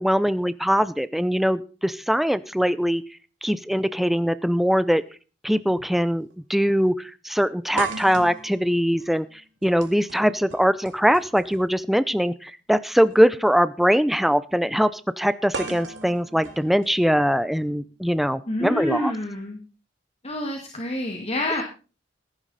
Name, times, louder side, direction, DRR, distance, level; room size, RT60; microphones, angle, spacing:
voice 1, 0.0-3.0 3.4-5.0 5.4-9.3 9.6-19.1, equal, ahead, 14 dB, 0.5 m, -22 dB
sound 1, 4.6-4.7 5.8-6.0 6.3-6.4 7.8-11.8 13.0-13.1 15.5-17.6, right 5 dB, 75° right, 2.2 m, -37 dB
voice 2, 18.5-19.6 20.2-21.6, left 1 dB, 35° left, 3 dB, 1.9 m, -28 dB
15.0 x 11.0 x 4.1 m, 0.35 s
head